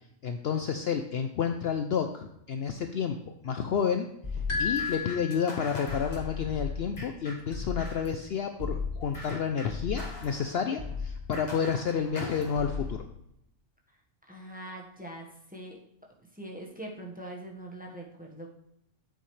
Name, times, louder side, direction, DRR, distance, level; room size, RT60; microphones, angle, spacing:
voice 1, 0.2-4.1 4.6-13.0, left 7 dB, 60° left, 6 dB, 0.7 m, -30 dB
sound 1, 4.2-8.2 8.6-13.0, left 4 dB, 35° left, 1.6 m, -37 dB
sound 2, 4.5-6.1, left 5 dB, 85° left, 2.5 m, -33 dB
voice 2, 14.3-15.8 16.3-18.5, right 1 dB, 5° right, -1 dB, 1.2 m, -42 dB
8.8 x 7.6 x 3.2 m, 0.79 s
omnidirectional pair, 1.3 m